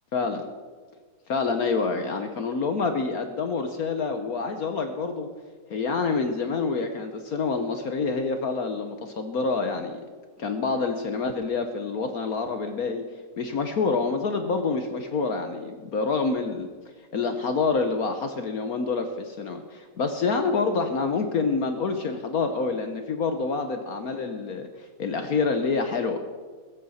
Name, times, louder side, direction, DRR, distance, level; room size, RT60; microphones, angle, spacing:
voice 1, 0.1-0.4 1.3-5.3 5.7-10.0 10.4-13.0 13.4-16.7 17.1-26.2, left 4 dB, 60° left, 7 dB, 1.3 m, -27 dB
16.0 x 14.5 x 4.2 m, 1.5 s
omnidirectional pair, 2.0 m